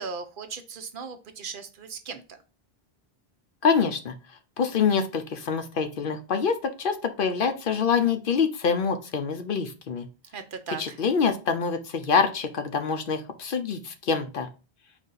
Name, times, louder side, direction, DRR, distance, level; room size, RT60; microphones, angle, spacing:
voice 1, 0.0-2.4 10.3-11.0, right 5 dB, 60° right, 8 dB, 0.7 m, -37 dB
voice 2, 3.6-4.1 4.6-10.1 10.8-14.5, left 6 dB, 65° left, 8 dB, 0.7 m, -25 dB
5.0 x 2.7 x 3.8 m, 0.32 s
omnidirectional pair, 1.0 m